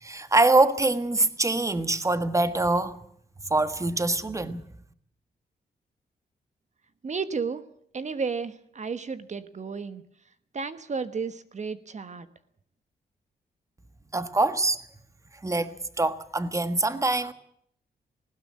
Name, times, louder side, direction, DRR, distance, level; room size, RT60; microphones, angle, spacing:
voice 1, 0.0-3.0 3.5-4.6 14.1-14.8 15.4-17.3, right 2 dB, 20° right, 1.5 m, -24 dB
voice 2, 7.0-7.6 7.9-10.0 10.5-12.3, right 5 dB, 45° right, 1.3 m, -32 dB
19.5 x 16.5 x 8.7 m
cardioid pair, 100°, 17 cm